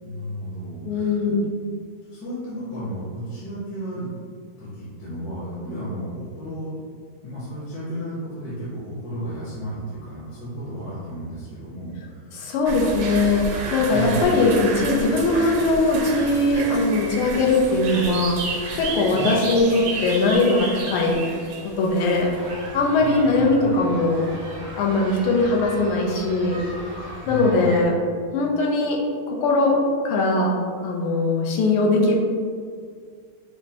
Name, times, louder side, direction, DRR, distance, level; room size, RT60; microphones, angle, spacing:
voice 1, 0.0-1.4 2.0-4.1 4.6-6.9 7.2-12.6 13.9-14.3 19.1-19.4 23.0-23.7 27.2-27.8, right 1 dB, 60° left, -9 dB, 1.5 m, -33 dB
voice 2, 0.8-1.5 12.3-21.2 21.6-22.3 22.7-24.3 24.8-26.6 27.3-28.0 28.3-29.0 29.3-29.8 30.0-30.5 30.8-32.2, left 2 dB, 85° left, -1 dB, 1.5 m, -20 dB
sound 1, 12.7-23.1, right 3 dB, 85° right, 1.5 m, -31 dB
sound 2, 21.9-27.8, equal, 65° right, 0.8 m, -38 dB
5.3 x 2.0 x 2.8 m, 2.1 s
omnidirectional pair, 2.4 m